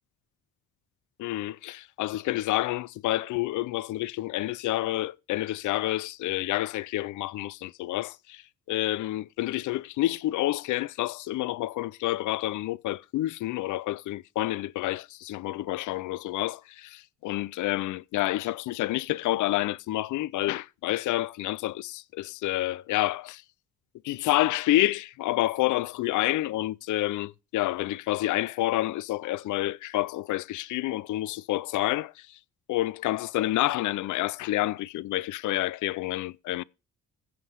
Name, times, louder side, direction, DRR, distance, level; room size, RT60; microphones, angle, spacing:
voice 1, 1.2-8.4 8.7-23.4 24.0-32.4 32.7-36.6, left 16 dB, 80° left, 0.6 m, -29 dB
15.5 x 5.5 x 6.5 m
cardioid pair, 90°, 30 cm